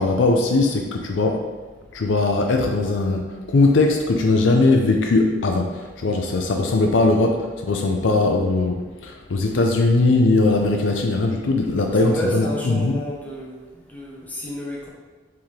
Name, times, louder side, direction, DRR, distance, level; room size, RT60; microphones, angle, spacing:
voice 1, 0.0-1.4 1.9-13.0, left 3 dB, 85° left, 2 dB, 0.5 m, -20 dB
voice 2, 11.9-14.9, equal, 10° left, -4 dB, 0.9 m, -31 dB
4.5 x 3.7 x 3.2 m, 1.3 s
head